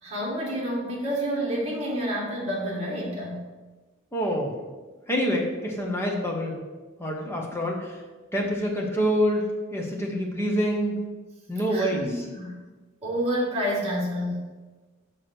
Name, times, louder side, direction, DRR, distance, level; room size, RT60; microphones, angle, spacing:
voice 1, 0.0-3.4 11.7-12.6 13.0-14.5, equal, 30° right, -4 dB, 2.2 m, -29 dB
voice 2, 4.1-4.5 5.1-6.6 7.0-8.0 8.3-11.0 11.5-12.3, equal, 15° left, 0 dB, 1.2 m, -26 dB
6.1 x 4.9 x 6.2 m, 1.3 s
head